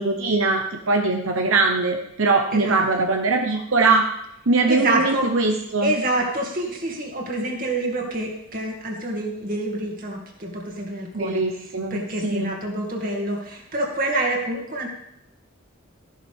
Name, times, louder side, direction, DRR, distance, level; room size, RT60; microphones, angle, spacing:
voice 1, 0.0-4.0 4.5-5.9 11.1-12.5, right 3 dB, 75° right, 3 dB, 1.0 m, -21 dB
voice 2, 2.5-3.1 4.7-5.3 5.8-14.9, right 1 dB, 40° right, 1 dB, 2.4 m, -27 dB
14.0 x 11.5 x 3.6 m, 0.76 s
head